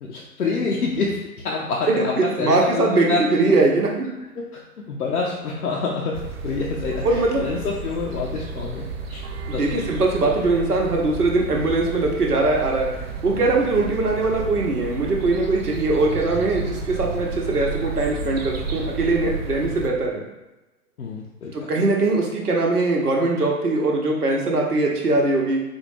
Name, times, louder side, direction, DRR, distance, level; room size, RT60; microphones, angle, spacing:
voice 1, 0.0-3.4 4.4-4.6 4.9-9.2 9.5-9.8 13.3-13.5 21.0-21.7, left 4 dB, 75° left, -3 dB, 0.7 m, -27 dB
voice 2, 2.2-4.1 7.0-7.5 9.5-12.9 13.2-20.2 21.5-25.6, right 2 dB, 80° right, -1 dB, 1.0 m, -21 dB
sound 1, 6.1-19.9, right 4 dB, 45° right, 0.5 m, -32 dB
4.3 x 2.2 x 3.1 m, 1.0 s
figure-of-eight pair, 110°, 45 cm